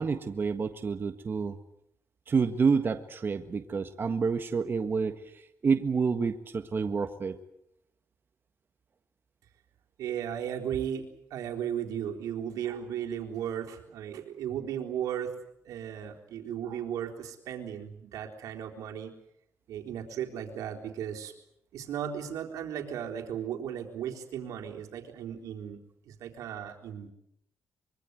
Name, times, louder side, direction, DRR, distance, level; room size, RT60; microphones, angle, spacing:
voice 1, 0.0-1.6 2.3-7.4, right 5 dB, 40° right, 8 dB, 1.6 m, -28 dB
voice 2, 10.0-15.3 15.7-19.1 19.7-21.3 21.7-25.8 26.1-27.1, right 9 dB, 85° right, 2 dB, 4.0 m, -36 dB
25.0 x 23.5 x 8.0 m, 0.76 s
cardioid pair, 95°, 6 cm